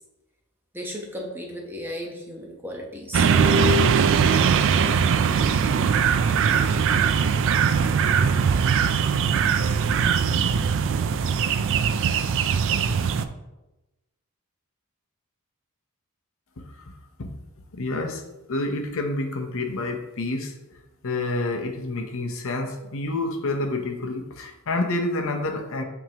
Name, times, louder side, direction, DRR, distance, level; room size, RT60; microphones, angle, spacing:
voice 1, 0.7-3.3, equal, 10° right, -1 dB, 0.9 m, -34 dB
sound 1, 3.1-13.2, right 6 dB, 60° right, 0.3 m, -21 dB
voice 2, 16.6-16.9 17.2-17.3 17.7-18.2 18.5-20.5 21.0-25.8, left 2 dB, 65° left, 3 dB, 0.8 m, -28 dB
8.9 x 3.6 x 2.9 m, 1.0 s
head